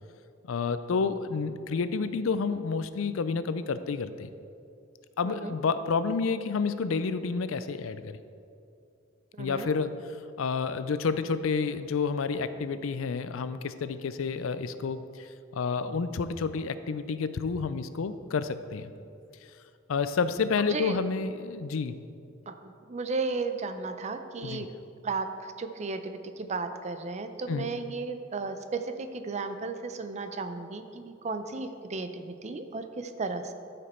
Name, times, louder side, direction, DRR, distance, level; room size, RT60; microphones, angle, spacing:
voice 1, 0.5-4.3 5.2-8.2 9.4-10.0 10.4-18.9 19.9-22.0 24.4-24.7 27.5-27.7, left 5 dB, 80° left, 12 dB, 0.4 m, -30 dB
voice 2, 5.2-5.5 9.3-9.7 20.7-21.0 22.5-24.7 25.0-33.5, right 3 dB, 35° right, 8 dB, 0.5 m, -34 dB
13.5 x 5.2 x 4.3 m, 2.5 s
head